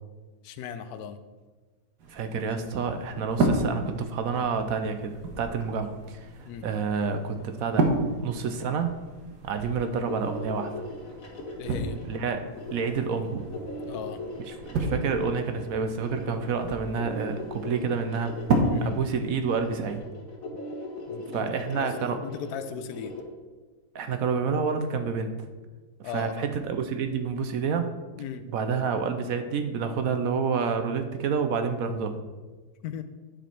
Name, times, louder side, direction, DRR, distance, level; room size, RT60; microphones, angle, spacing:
voice 1, 0.4-1.2 6.4-6.7 11.6-12.0 13.8-14.2 18.7-18.9 21.1-23.1 26.0-26.3 28.2-28.4 32.8-33.0, left 8 dB, 75° left, 10 dB, 1.1 m, -37 dB
sound 1, 2.0-20.0, right 2 dB, 90° right, 1.6 m, -33 dB
voice 2, 2.1-6.2 6.6-7.9 8.2-9.0 9.4-10.7 12.0-12.4 12.7-13.5 14.6-18.3 18.8-20.0 21.3-22.2 23.9-25.3 26.0-27.9 28.5-32.1, right 5 dB, 70° right, 7 dB, 1.0 m, -28 dB
sound 2, 9.5-23.2, left 2 dB, 55° left, 2.0 m, -40 dB
9.8 x 5.1 x 4.5 m, 1.3 s
omnidirectional pair, 1.7 m